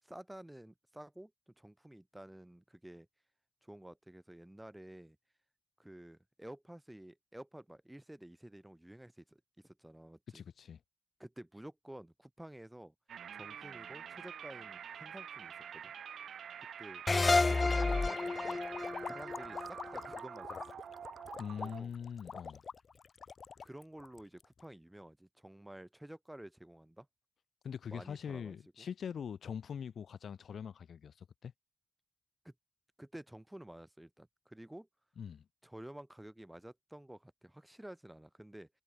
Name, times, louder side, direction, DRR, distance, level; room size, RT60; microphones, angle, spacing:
voice 1, 0.0-3.1 3.6-5.2 5.8-10.4 11.2-12.9 13.3-15.9 16.8-17.0 17.4-18.6 19.1-20.6 21.6-21.9 23.6-27.1 27.9-28.9 32.4-32.5 33.0-34.9 35.6-38.7, right 1 dB, 10° right, 6.7 m, -51 dB
voice 2, 10.3-10.8 21.4-22.6 27.6-31.5 35.2-35.4, left 7 dB, 80° left, 1.3 m, -43 dB
sound 1, 13.1-21.8, right 8 dB, 85° right, 0.9 m, -47 dB
sound 2, 17.1-20.4, left 3 dB, 35° left, 0.9 m, -31 dB
sound 3, 17.3-24.6, left 5 dB, 65° left, 2.6 m, -45 dB
cardioid pair, 55°, 0 cm